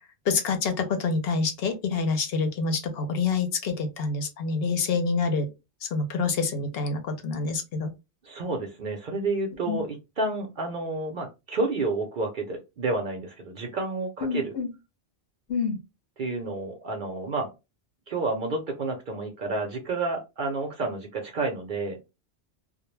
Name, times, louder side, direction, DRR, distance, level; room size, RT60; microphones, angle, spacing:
voice 1, 0.3-5.5 5.9-7.9 9.7-9.8 14.2-14.7 15.5-15.8, left 4 dB, 65° left, 0.8 m, -27 dB
voice 2, 8.2-14.5 16.2-17.5 18.1-22.0, right 3 dB, 55° right, 0.7 m, -30 dB
2.2 x 2.0 x 3.0 m
omnidirectional pair, 1.1 m